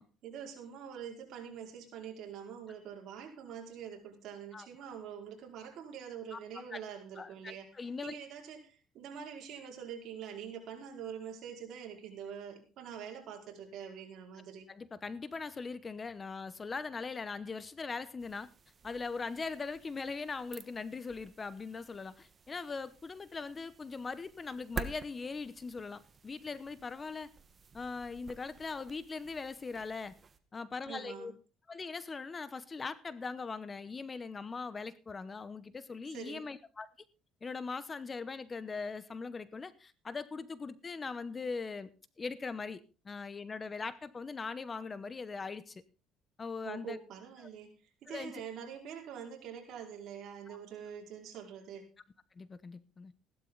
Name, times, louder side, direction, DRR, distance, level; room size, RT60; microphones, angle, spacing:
voice 1, 0.2-7.7 8.0-14.7 30.9-31.3 36.1-36.5 46.6-47.7 48.0-51.9, right 8 dB, 60° right, 5.0 m, -45 dB
voice 2, 7.2-8.2 14.7-18.5 18.8-27.3 27.7-30.2 30.5-31.3 31.7-36.9 37.4-41.9 42.2-45.8 46.4-47.0 47.4-47.5 48.1-48.4 50.5-50.6 52.4-53.1, left 4 dB, 25° left, 0.8 m, -40 dB
sound 1, 18.2-30.4, right 4 dB, 30° right, 1.3 m, -50 dB
15.5 x 12.0 x 4.0 m
cardioid pair, 115°, 0 cm